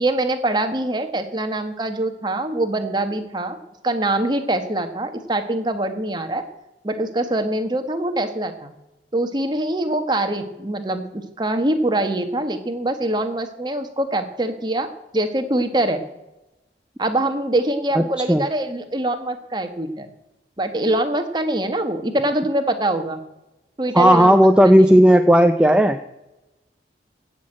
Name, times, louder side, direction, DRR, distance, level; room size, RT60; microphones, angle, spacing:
voice 1, 0.0-3.6 3.8-6.4 6.8-8.7 9.1-14.9 15.1-16.0 17.0-20.1 20.6-23.2 23.8-24.4 24.7-24.8, right 1 dB, 25° right, 7 dB, 1.3 m, -23 dB
voice 2, 18.0-18.4 23.9-26.0, equal, 5° right, 7 dB, 0.4 m, -13 dB
16.0 x 6.3 x 8.7 m, 0.98 s
head